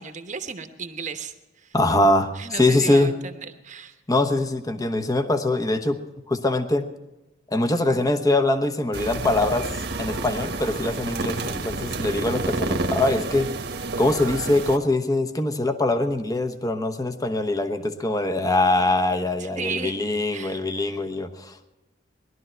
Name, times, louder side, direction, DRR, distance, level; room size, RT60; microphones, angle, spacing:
voice 1, 0.0-1.7 2.3-4.0 19.4-20.0 20.3-21.1, right 5 dB, 40° right, 7 dB, 1.0 m, -35 dB
voice 2, 1.7-3.1 4.1-6.0 6.3-6.9 7.5-9.7 10.0-13.5 14.0-21.7, left 2 dB, 20° left, 7 dB, 1.0 m, -23 dB
sound 1, 8.9-14.8, right 2 dB, 60° right, 1.2 m, -29 dB
20.0 x 12.0 x 4.5 m, 1.0 s
head